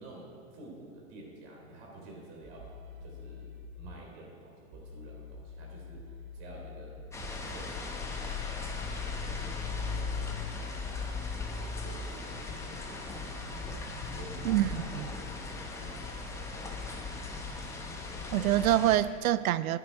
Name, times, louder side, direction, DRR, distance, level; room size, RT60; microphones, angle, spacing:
voice 1, 0.0-2.7 3.0-3.5 3.8-10.7 11.3-13.7 14.1-17.2, right 2 dB, 50° right, -1 dB, 3.5 m, -50 dB
sound 1, 2.4-9.4, left 4 dB, 30° right, 0.9 m, -47 dB
sound 2, 7.1-19.0, left 4 dB, 5° left, 0.8 m, -37 dB
voice 2, 14.4-15.1 18.3-19.8, right 13 dB, 85° right, 16 dB, 0.6 m, -26 dB
13.5 x 10.0 x 4.5 m, 2.1 s
supercardioid pair, 145°, 41 cm